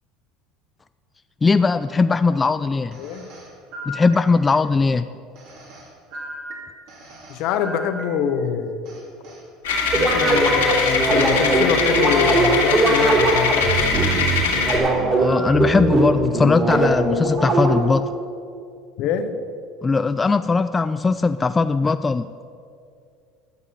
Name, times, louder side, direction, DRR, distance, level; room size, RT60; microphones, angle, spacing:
voice 1, 1.4-3.0 3.9-5.1 15.2-18.1 19.8-22.3, left 4 dB, 20° left, 11 dB, 0.3 m, -19 dB
sound 1, 2.9-4.7 5.3-8.5 8.8-11.5 12.1-12.3 12.9-13.1 13.5-14.6 15.2-15.8, equal, 65° right, 2.8 m, -38 dB
voice 2, 3.0-3.3 7.3-8.8 9.9-13.8 19.0-19.3, left 7 dB, 65° left, 9 dB, 0.9 m, -24 dB
sound 2, 9.6-14.8, left 4 dB, 85° left, 2.2 m, -22 dB
sound 3, 9.9-18.0, right 2 dB, 40° right, 3.1 m, -20 dB
12.0 x 6.8 x 6.9 m, 2.5 s
hypercardioid pair, 80°, 0 cm